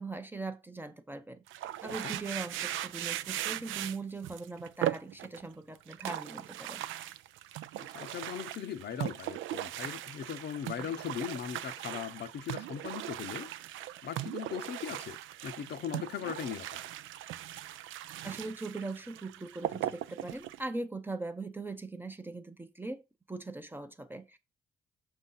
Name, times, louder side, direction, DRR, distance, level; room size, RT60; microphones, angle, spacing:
voice 1, 0.0-6.8 18.2-23.0 23.3-24.4, right 3 dB, 10° right, 0.6 m, -40 dB
sound 1, 1.5-5.4 5.8-20.6, right 13 dB, 80° right, 0.4 m, -39 dB
voice 2, 7.8-13.5 14.0-16.8, left 8 dB, 60° left, 0.7 m, -39 dB
6.2 x 2.7 x 5.5 m
cardioid pair, 90°, 20 cm